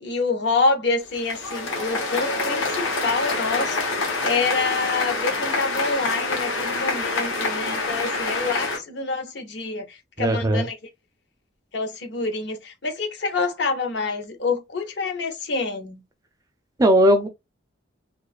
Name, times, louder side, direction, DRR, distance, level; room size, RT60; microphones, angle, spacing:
voice 1, 0.0-10.7 11.7-16.0, left 3 dB, 60° left, 0.6 m, -27 dB
sound 1, 1.0-8.8, left 3 dB, 85° left, 1.0 m, -26 dB
voice 2, 10.2-10.7 16.8-17.3, equal, 15° right, 0.3 m, -17 dB
2.5 x 2.3 x 2.2 m
head